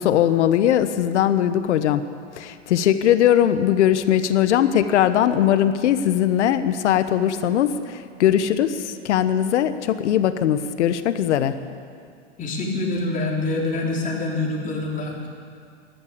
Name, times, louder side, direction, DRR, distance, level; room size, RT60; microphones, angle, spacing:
voice 1, 0.0-2.0 2.4-11.5, left 10 dB, 75° left, 11 dB, 1.1 m, -20 dB
voice 2, 12.4-15.3, left 2 dB, 20° left, -2 dB, 3.5 m, -25 dB
14.5 x 11.5 x 8.5 m, 2.3 s
hypercardioid pair, 125°, 36 cm